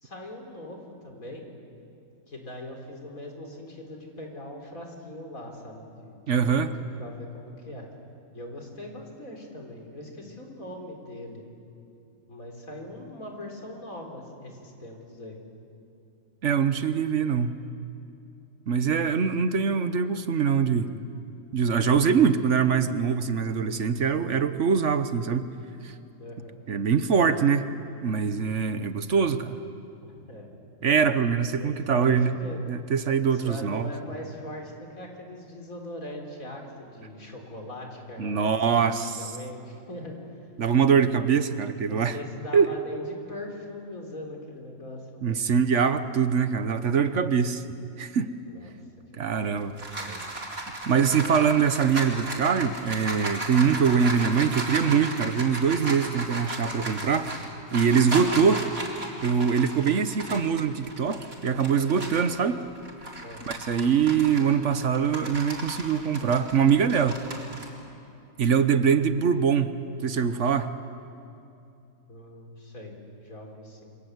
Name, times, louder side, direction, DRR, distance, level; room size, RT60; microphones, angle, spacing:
voice 1, 0.0-1.4 2.3-7.9 8.3-11.4 12.3-15.4 26.2-26.6 30.0-30.5 31.3-32.7 33.3-40.2 41.8-45.4 48.5-48.7 49.1-50.5 63.2-63.6 72.1-73.0 73.2-73.9, left 1 dB, 75° left, 2 dB, 4.5 m, -41 dB
voice 2, 6.3-6.7 16.4-17.6 18.7-20.9 21.5-25.5 25.8-25.9 26.7-27.6 28.0-29.5 30.8-32.4 32.7-33.9 38.2-39.2 40.6-42.2 42.5-42.7 45.2-47.6 48.0-48.3 49.2-49.7 50.9-57.4 57.7-58.7 59.2-62.6 63.5-67.2 68.4-69.7 70.0-70.7, right 6 dB, 60° right, 11 dB, 1.3 m, -23 dB
sound 1, 49.4-62.3 62.8-67.7, right 2 dB, 75° right, 4.2 m, -35 dB
28.5 x 25.0 x 8.1 m, 2.7 s
omnidirectional pair, 1.5 m